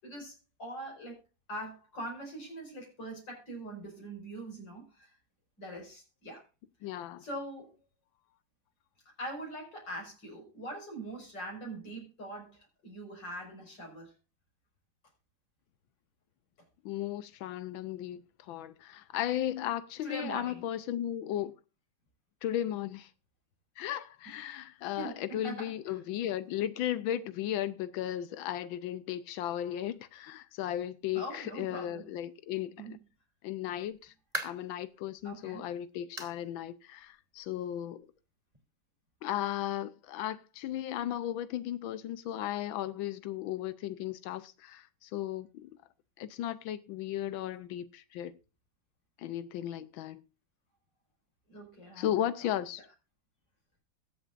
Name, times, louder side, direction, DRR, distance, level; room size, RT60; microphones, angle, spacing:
voice 1, 0.0-1.2 1.5-5.1 5.6-6.4 6.8-7.0 7.2-7.7 9.2-14.1 20.0-20.6 25.0-26.0 31.1-32.1 32.8-33.0 35.2-35.6 51.5-52.6, right 1 dB, 65° left, 6.1 m, -42 dB
voice 2, 6.8-7.2 16.8-21.5 22.4-23.1 23.8-32.9 33.4-34.1 34.4-38.1 39.2-45.7 46.2-48.3 49.2-50.2 52.0-52.8, left 12 dB, 90° left, 1.5 m, -35 dB
sound 1, 33.7-34.8 35.3-35.4 36.2-36.4 36.8-36.9 37.4-37.5 38.5-38.6, right 1 dB, 20° right, 2.6 m, -39 dB
22.0 x 8.0 x 2.5 m
omnidirectional pair, 2.1 m